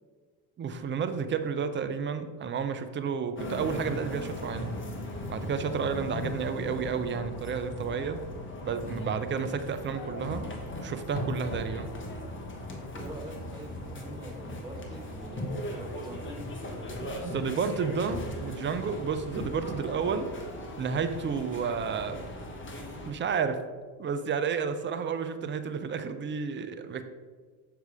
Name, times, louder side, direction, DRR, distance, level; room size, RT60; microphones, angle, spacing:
voice 1, 0.6-4.8 5.3-8.2 8.6-10.5 10.8-11.9 17.0-20.3 20.8-22.3 23.1-23.6 24.0-27.0, right 6 dB, 25° right, 9 dB, 0.5 m, -31 dB
sound 1, 3.4-23.1, left 1 dB, 25° left, 1.2 m, -38 dB
voice 2, 12.9-13.7 14.0-16.3, right 2 dB, 10° right, 1 dB, 1.1 m, -44 dB
6.4 x 3.4 x 4.8 m, 1.5 s
hypercardioid pair, 80°, 50 cm